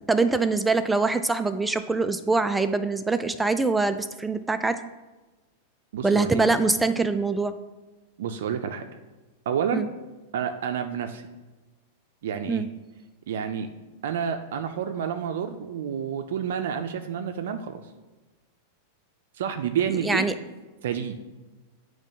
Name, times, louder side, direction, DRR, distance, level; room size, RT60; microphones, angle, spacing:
voice 1, 0.1-4.8 6.0-7.5 9.7-9.9 12.5-12.7 20.0-20.3, right 3 dB, 5° right, 10 dB, 0.4 m, -24 dB
voice 2, 5.9-6.4 8.2-8.8 9.5-9.9 10.3-11.3 12.2-12.7 13.3-13.7 14.0-17.8 19.3-20.3 20.8-21.1, right 8 dB, 75° right, 7 dB, 0.5 m, -29 dB
8.8 x 3.1 x 5.3 m, 1.2 s
hypercardioid pair, 130°, 0 cm